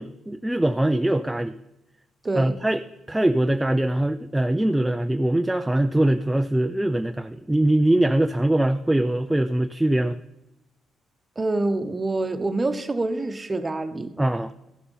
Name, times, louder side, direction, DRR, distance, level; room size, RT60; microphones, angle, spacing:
voice 1, 0.0-1.6 2.3-10.2 14.2-14.5, right 1 dB, 10° right, 0.4 m, -22 dB
voice 2, 2.2-2.6 11.4-14.1, right 2 dB, 25° right, 1.0 m, -26 dB
14.5 x 6.8 x 5.5 m
cardioid pair, 90°, 0 cm